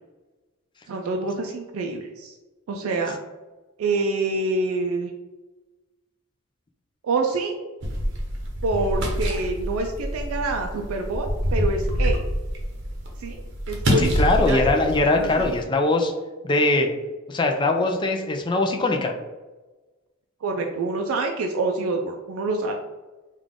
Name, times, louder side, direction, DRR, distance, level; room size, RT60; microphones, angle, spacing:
voice 1, 0.9-2.4 2.7-3.2 3.8-5.1 7.0-7.6 8.6-12.2 13.2-14.1 14.4-14.6 15.2-15.5 20.4-22.8, right 3 dB, 80° right, 2 dB, 0.4 m, -26 dB
sound 1, 7.8-15.6, equal, 55° right, 0.8 m, -26 dB
voice 2, 14.0-16.1 16.4-16.9 17.3-19.1, left 2 dB, 20° left, 3 dB, 0.4 m, -21 dB
3.6 x 2.4 x 3.5 m, 1.2 s
head